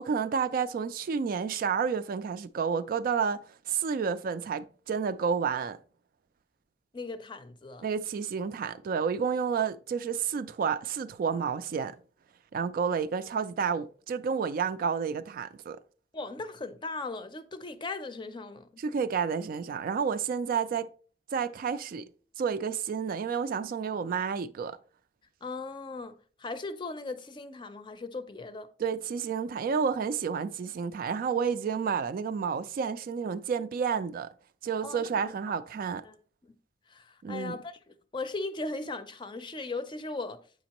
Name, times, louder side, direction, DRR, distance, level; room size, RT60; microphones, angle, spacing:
voice 1, 0.0-3.4 3.7-5.8 7.8-11.9 12.5-15.8 18.8-20.9 21.3-22.0 22.4-24.8 28.8-34.3 34.6-36.0 37.2-37.6, right 6 dB, 55° right, 0.3 m, -30 dB
voice 2, 6.9-7.9 16.1-18.7 25.4-26.1 26.4-28.7 34.8-35.3 36.0-36.2 36.4-36.5 36.9-40.4, left 3 dB, 25° left, 0.5 m, -38 dB
7.8 x 5.1 x 2.9 m
head